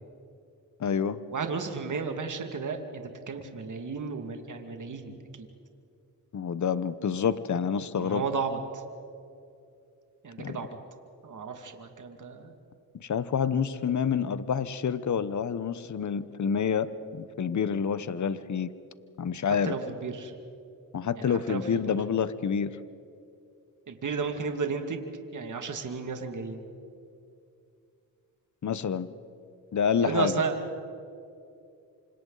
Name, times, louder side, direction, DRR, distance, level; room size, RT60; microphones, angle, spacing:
voice 1, 0.8-1.2 6.3-8.2 10.4-10.6 13.0-18.7 19.2-19.7 20.9-22.8 28.6-29.1 29.7-30.4, left 7 dB, 50° left, 14 dB, 1.1 m, -28 dB
voice 2, 1.3-5.5 8.0-8.8 10.2-10.7 11.2-12.5 19.6-20.3 21.2-22.0 23.9-25.1 25.3-26.6 30.0-30.6, right 5 dB, 55° right, 5 dB, 2.3 m, -33 dB
28.0 x 26.0 x 4.1 m, 2.5 s
cardioid pair, 60°, 37 cm